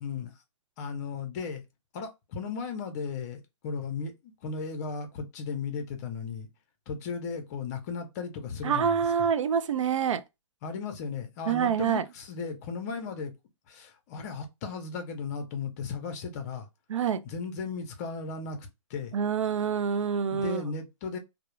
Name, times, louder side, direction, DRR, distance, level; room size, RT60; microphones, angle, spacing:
voice 1, 0.0-0.3 0.8-1.6 1.9-6.5 6.9-9.3 10.6-13.3 13.7-16.7 17.2-19.1 20.3-21.2, left 5 dB, 30° left, 0.6 m, -36 dB
voice 2, 8.6-10.2 11.5-12.0 16.9-17.2 19.1-20.6, right 7 dB, 80° right, 0.4 m, -26 dB
2.3 x 2.0 x 3.0 m
hypercardioid pair, 150°, 16 cm